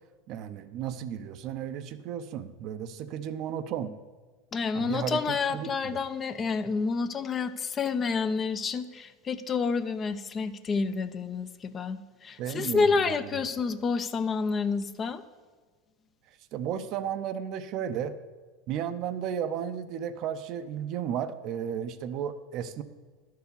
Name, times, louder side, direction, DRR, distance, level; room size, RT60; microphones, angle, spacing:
voice 1, 0.3-3.9 4.7-6.0 12.4-13.4 16.5-18.1 18.7-22.8, right 9 dB, 55° right, 11 dB, 0.6 m, -34 dB
voice 2, 4.5-15.2, left 5 dB, 30° left, 11 dB, 0.5 m, -29 dB
11.0 x 4.7 x 6.8 m, 1.4 s
hypercardioid pair, 100°, 0 cm